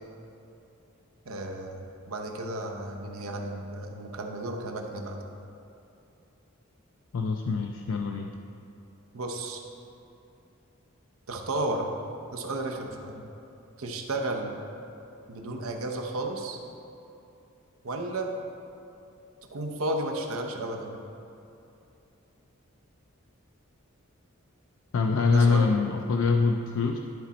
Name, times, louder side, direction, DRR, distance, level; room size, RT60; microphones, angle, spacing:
voice 1, 1.3-5.2 9.1-9.6 11.3-12.0 12.3-13.3 13.8-14.6 15.3-16.6 17.8-18.3 19.5-21.0 25.3-25.7, right 2 dB, 85° right, 2 dB, 0.8 m, -33 dB
voice 2, 7.1-8.3 24.9-27.0, left 4 dB, 65° left, 2 dB, 0.4 m, -24 dB
11.5 x 4.2 x 4.1 m, 2.8 s
head